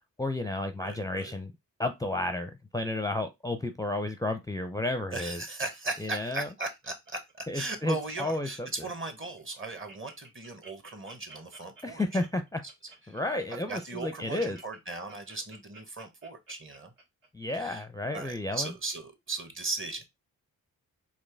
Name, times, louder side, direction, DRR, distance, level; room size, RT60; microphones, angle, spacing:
voice 1, 0.2-1.5 1.8-5.4 6.0-6.5 7.5-8.7 11.8-12.6 13.1-14.6 17.3-18.7, left 2 dB, 10° left, 0.5 m, -32 dB
voice 2, 0.8-1.3 5.1-12.2 13.1-13.2 13.7-16.9 17.5-17.9 18.1-20.0, right 3 dB, 35° right, 1.3 m, -37 dB
Laughter, 5.8-7.5 7.8-8.2 8.6-8.7 9.0-9.1 9.4-17.8 18.3-18.4, right 3 dB, 65° right, 2.3 m, -53 dB
4.3 x 3.0 x 3.3 m
cardioid pair, 65°, 35 cm